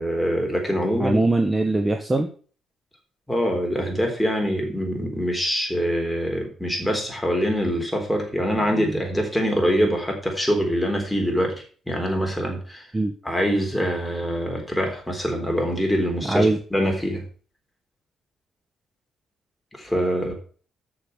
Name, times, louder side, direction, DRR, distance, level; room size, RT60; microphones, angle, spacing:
voice 1, 0.0-1.2 3.3-12.9 13.2-17.2 19.8-20.3, equal, 5° left, 1 dB, 3.8 m, -24 dB
voice 2, 1.0-2.3 12.9-13.1 16.2-16.6, right 2 dB, 20° right, 6 dB, 1.0 m, -21 dB
6.9 x 6.7 x 6.6 m, 0.41 s
cardioid pair, 90°, 0 cm